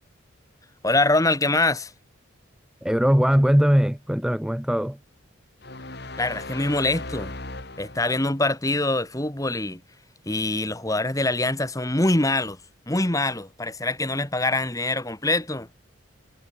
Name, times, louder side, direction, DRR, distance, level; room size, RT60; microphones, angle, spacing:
voice 1, 0.8-1.9 6.2-7.4 7.8-9.8 10.2-12.6 12.9-15.7, left 2 dB, 15° left, 1.6 m, -24 dB
voice 2, 2.8-5.0, equal, 5° right, 0.4 m, -20 dB
sound 1, 5.6-8.4, left 2 dB, 50° left, 3.1 m, -37 dB
head